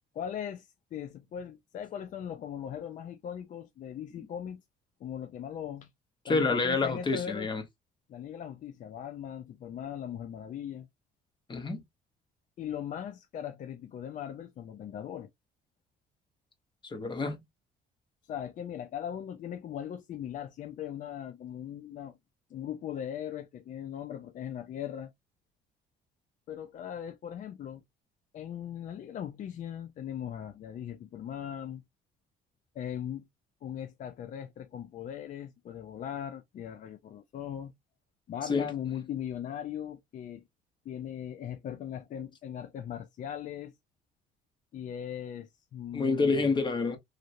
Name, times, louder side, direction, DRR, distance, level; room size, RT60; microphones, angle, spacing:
voice 1, 0.1-4.6 5.0-5.9 6.3-7.5 8.1-10.9 12.6-15.3 18.2-22.2 22.5-25.1 26.5-27.8 28.3-31.8 32.7-33.3 33.6-37.7 38.3-40.5 40.8-43.7 44.7-46.6, left 9 dB, 50° left, 0.5 m, -39 dB
voice 2, 6.2-7.6 11.5-11.8 16.8-17.4 38.5-38.7 45.9-47.0, left 3 dB, 25° left, 1.1 m, -28 dB
3.2 x 2.5 x 2.5 m
cardioid pair, 110°, 17 cm